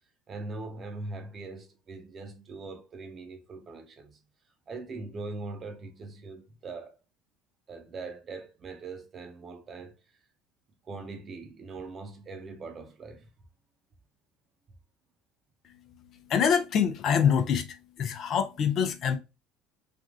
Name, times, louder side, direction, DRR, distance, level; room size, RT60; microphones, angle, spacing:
voice 1, 0.3-4.2 4.7-6.9 7.7-9.9 10.8-13.3, right 3 dB, 40° right, 0.8 m, -41 dB
voice 2, 16.3-19.2, left 7 dB, 50° left, 0.6 m, -25 dB
3.5 x 2.4 x 2.5 m
hypercardioid pair, 70°, 0 cm